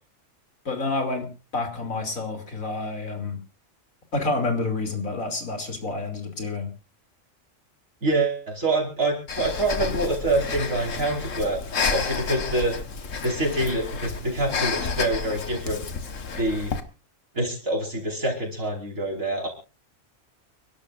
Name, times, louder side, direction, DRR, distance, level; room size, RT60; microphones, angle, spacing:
voice 1, 0.6-1.3 1.5-3.4 4.1-6.7, left 3 dB, 90° left, 4 dB, 3.3 m, -28 dB
voice 2, 8.0-11.6 11.9-12.7 13.2-15.8 16.4-16.7 17.3-19.5, right 2 dB, 75° right, 0 dB, 5.5 m, -26 dB
Breathing, 9.3-16.8, left 5 dB, 70° left, 1.7 m, -30 dB
30.0 x 12.0 x 2.6 m, 0.32 s
omnidirectional pair, 1.4 m